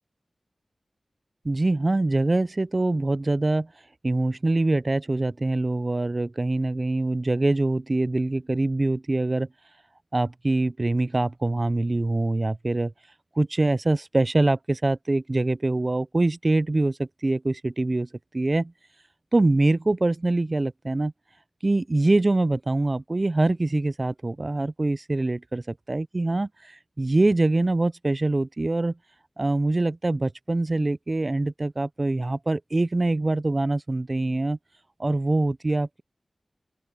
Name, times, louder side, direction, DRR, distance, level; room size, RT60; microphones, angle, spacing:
voice 1, 1.4-3.7 4.0-9.5 10.1-12.9 13.4-18.1 18.3-18.7 19.3-21.1 21.6-29.0 29.4-34.6 35.0-36.0, right 2 dB, 35° right, 0.3 m, -24 dB
open air
wide cardioid pair, 85°, 0 cm